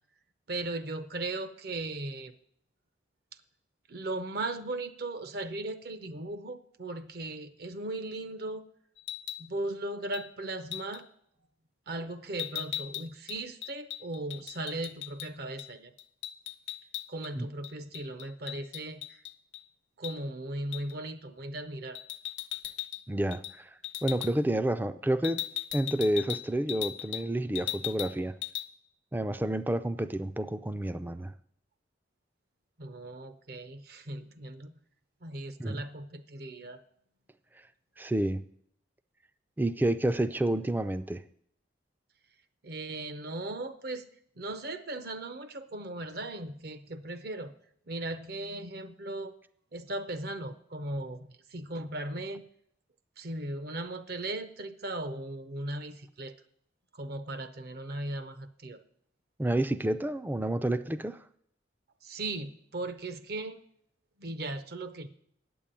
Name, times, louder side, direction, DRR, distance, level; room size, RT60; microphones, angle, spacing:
voice 1, 0.5-2.3 3.9-8.6 9.4-11.1 11.9-15.9 17.1-19.2 20.0-22.0 32.8-34.8 35.2-36.8 42.6-44.1 44.4-47.5 47.9-49.4 49.7-52.4 53.2-56.3 56.9-58.8 62.0-63.6 64.2-65.1, right 2 dB, 55° right, 11 dB, 0.7 m, -37 dB
sound 1, 9.0-9.5 10.1-10.3 10.7-11.0 12.4-15.3 15.6-15.7 16.0-17.3 17.6-19.6 20.0-20.2 20.7-20.9 21.9-23.0 23.3-23.6 23.8-24.3 25.2-27.3 27.5-28.1 28.4-28.7, left 14 dB, 75° left, 0.7 m, -38 dB
voice 2, 23.1-23.7 24.0-25.4 25.7-28.3 29.1-31.3 35.6-35.8 38.0-38.4 39.6-41.2 59.4-61.2, right 1 dB, 10° right, 13 dB, 0.3 m, -29 dB
9.1 x 7.0 x 8.9 m, 0.69 s
head